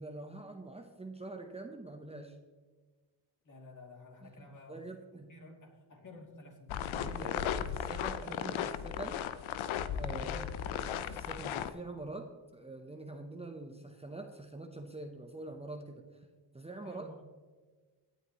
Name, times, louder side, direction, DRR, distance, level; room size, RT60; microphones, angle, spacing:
voice 1, 0.0-2.4 4.2-5.3 6.9-9.2 9.9-16.3 16.5-17.1, right 2 dB, 15° right, 4 dB, 1.0 m, -45 dB
voice 2, 3.4-4.9 5.3-6.8 7.0-7.4 10.2-10.6 16.8-17.2, left 2 dB, 40° left, 1 dB, 2.9 m, -52 dB
sound 1, 6.7-11.7, left 9 dB, 90° left, 0.8 m, -36 dB
17.5 x 9.2 x 3.2 m, 1.4 s
cardioid pair, 100°, 46 cm